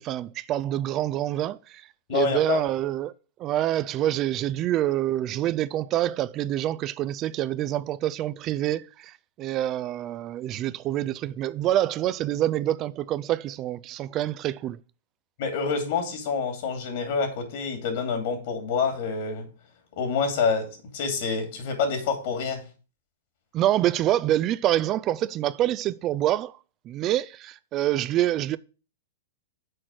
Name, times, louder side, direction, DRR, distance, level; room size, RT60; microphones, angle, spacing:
voice 1, 0.0-1.8 2.1-3.1 3.4-14.8 23.5-26.6 26.9-28.6, right 13 dB, 35° right, 0.3 m, -26 dB
voice 2, 2.1-2.6 15.4-19.5 19.9-22.6, left 5 dB, 60° left, 2.6 m, -27 dB
6.4 x 4.5 x 6.2 m
hypercardioid pair, 125°, 0 cm